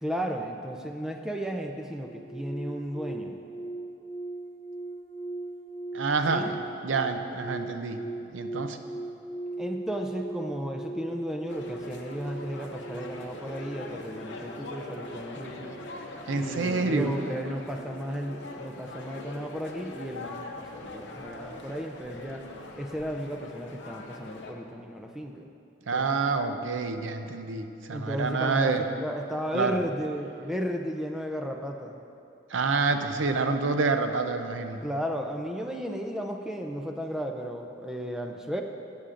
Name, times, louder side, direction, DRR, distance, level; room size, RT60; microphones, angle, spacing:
voice 1, 0.0-3.4 6.3-6.6 9.6-15.8 16.3-22.4 22.8-25.5 25.9-26.1 27.9-32.0 34.8-38.6, equal, 5° right, 3 dB, 0.5 m, -34 dB
sound 1, 2.0-19.4 19.6-20.0, right 2 dB, 20° left, 2.0 m, -40 dB
voice 2, 5.9-6.5 6.8-8.0 8.3-8.8 16.3-17.2 25.9-28.8 29.5-29.8 32.5-34.8, right 4 dB, 75° right, 7 dB, 0.6 m, -27 dB
sound 2, 11.5-24.5, left 2 dB, 65° left, 0.7 m, -42 dB
14.0 x 8.4 x 2.5 m, 2.7 s
head